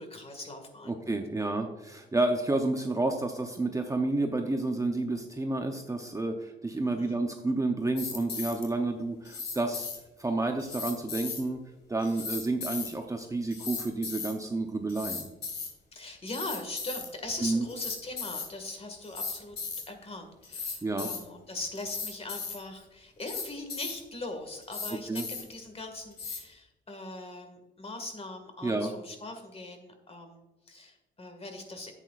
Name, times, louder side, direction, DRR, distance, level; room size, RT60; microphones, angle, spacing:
voice 1, 0.0-1.0 6.7-7.2 15.9-19.6 19.9-31.9, left 2 dB, 30° left, 5 dB, 1.9 m, -41 dB
voice 2, 0.9-9.9 10.2-11.6 11.9-15.3 17.4-17.6 20.8-21.1 25.1-25.2 28.6-28.9, right 2 dB, 15° right, 4 dB, 0.7 m, -30 dB
sound 1, 8.0-8.7 9.2-10.0 10.6-11.4 12.0-12.9 13.5-14.3 14.9-15.7 16.3-17.1 17.7-18.5 19.0-19.8 20.4-21.2 21.7-22.6 23.2-23.9 24.6-25.5 26.1-26.4, left 5 dB, 55° left, 2.3 m, -36 dB
11.0 x 8.2 x 2.5 m, 1.0 s
cardioid pair, 90°, 20 cm